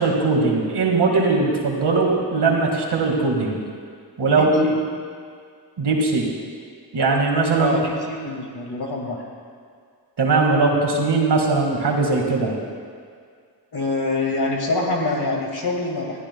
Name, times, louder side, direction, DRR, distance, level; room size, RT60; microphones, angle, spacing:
voice 1, 0.0-3.6 4.2-4.7 5.8-6.3 6.9-7.7 10.2-12.5, right 3 dB, 75° right, 0 dB, 2.1 m, -20 dB
voice 2, 4.3-4.7 7.6-9.3 13.7-16.2, left 2 dB, 70° left, 0 dB, 2.3 m, -25 dB
19.0 x 13.5 x 2.3 m, 2.1 s
wide cardioid pair, 75°, 40 cm